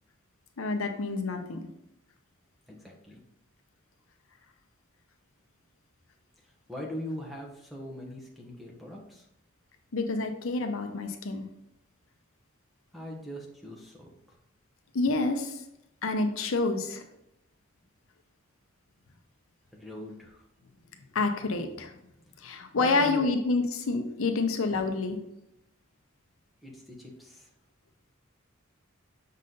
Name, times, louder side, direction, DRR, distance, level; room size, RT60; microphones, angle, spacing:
voice 1, 0.6-1.6 9.9-11.5 14.9-15.6 16.0-17.0 21.1-21.9 22.4-25.2, left 3 dB, 70° left, 6 dB, 0.7 m, -28 dB
voice 2, 2.7-3.2 6.7-9.2 12.9-14.1 19.7-20.4 22.8-23.3 26.6-27.5, left 1 dB, ahead, -2 dB, 1.1 m, -40 dB
6.4 x 4.1 x 3.9 m, 0.82 s
head